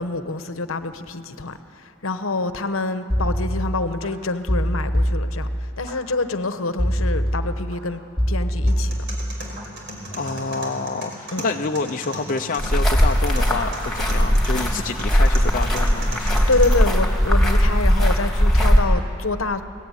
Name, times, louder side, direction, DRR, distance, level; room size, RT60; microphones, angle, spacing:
voice 1, 0.0-5.5 5.8-8.0 8.3-8.9 11.3-11.4 16.5-19.6, left 3 dB, 75° left, 10 dB, 1.1 m, -26 dB
sound 1, 3.1-4.1 4.5-5.9 6.8-7.8 8.2-9.6 10.0-10.4, equal, 30° right, 5.1 m, -23 dB
sound 2, 8.7-16.7, right 1 dB, 60° right, 4.9 m, -37 dB
voice 2, 10.2-16.5, left 3 dB, 40° left, 3 dB, 0.7 m, -28 dB
sound 3, 12.6-18.8, equal, ahead, 2.8 m, -19 dB
22.5 x 17.0 x 9.8 m, 2.6 s
head